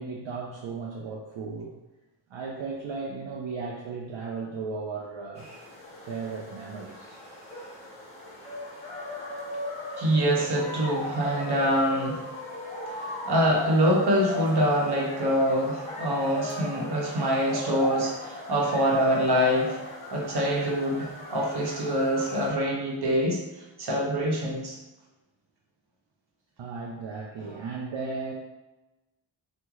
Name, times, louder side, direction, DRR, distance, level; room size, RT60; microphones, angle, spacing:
voice 1, 0.0-1.7 2.3-5.5 6.0-7.2 26.6-28.3, right 4 dB, 75° right, -2 dB, 0.5 m, -35 dB
sound 1, 5.4-22.5, left 2 dB, 15° left, 1.3 m, -37 dB
voice 2, 10.0-12.2 13.0-19.8 20.1-23.4 23.8-24.8, equal, 55° right, -1 dB, 0.9 m, -25 dB
3.0 x 2.1 x 3.6 m, 1.0 s
cardioid pair, 55°, 47 cm